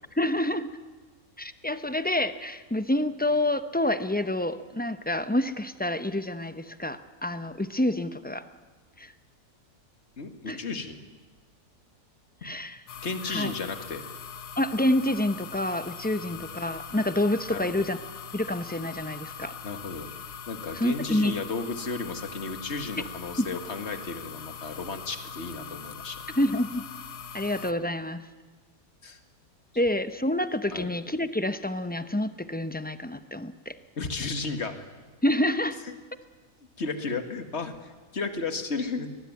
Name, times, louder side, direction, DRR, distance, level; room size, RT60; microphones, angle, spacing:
voice 1, 0.1-0.7 1.4-8.4 9.0-9.1 10.5-10.6 12.4-12.8 13.3-13.5 14.6-18.0 18.3-19.5 20.7-21.3 26.4-26.8 27.3-28.2 29.8-33.7 35.2-35.8, left 1 dB, 10° left, 11 dB, 0.5 m, -28 dB
voice 2, 10.2-11.0 12.4-12.5 13.0-14.0 16.2-16.4 17.5-17.8 19.6-20.1 20.5-26.2 29.0-29.2 30.7-30.9 34.0-34.8 36.8-39.1, left 4 dB, 45° left, 7 dB, 2.2 m, -34 dB
sound 1, 12.9-27.7, left 7 dB, 90° left, 1.6 m, -42 dB
23.5 x 20.5 x 9.5 m, 1.4 s
omnidirectional pair, 1.6 m